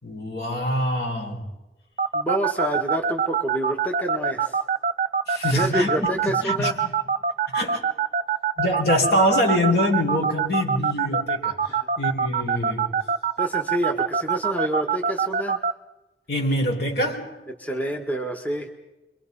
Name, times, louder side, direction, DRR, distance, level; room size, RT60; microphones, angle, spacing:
voice 1, 0.0-1.5 5.3-6.0 6.2-6.9 7.5-7.8 8.6-13.0 16.3-17.4, left 1 dB, 60° left, 4.7 m, -25 dB
sound 1, 2.0-15.7, right 6 dB, 35° right, 0.8 m, -23 dB
voice 2, 2.1-4.6 5.5-6.8 11.7-11.9 13.4-15.7 17.6-18.7, equal, 10° left, 1.7 m, -28 dB
29.5 x 23.5 x 5.5 m
head